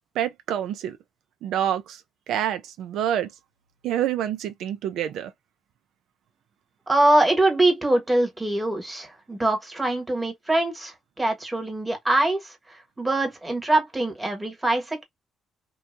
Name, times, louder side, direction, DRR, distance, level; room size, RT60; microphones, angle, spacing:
voice 1, 0.2-1.0 1.4-2.0 2.3-3.3 3.8-5.3, right 10 dB, 85° right, 0.4 m, -27 dB
voice 2, 6.9-12.5 13.0-15.0, right 2 dB, 15° right, 1.2 m, -23 dB
2.8 x 2.2 x 2.4 m
cardioid pair, 90°, 0 cm